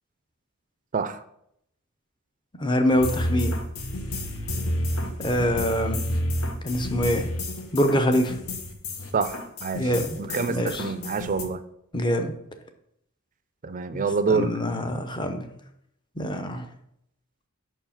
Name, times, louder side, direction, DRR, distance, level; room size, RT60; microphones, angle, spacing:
voice 1, 2.6-3.5 5.2-6.1 6.6-7.3 7.7-8.3 9.7-10.1 10.5-10.8 11.9-12.3 13.9-15.5 16.2-16.6, equal, 20° left, 6 dB, 0.6 m, -24 dB
sound 1, 2.9-11.4, left 1 dB, 80° left, 1.1 m, -30 dB
voice 2, 9.1-9.9 10.1-11.6 13.6-14.5, right 4 dB, 35° right, 12 dB, 0.4 m, -27 dB
5.7 x 4.7 x 5.6 m, 0.76 s
head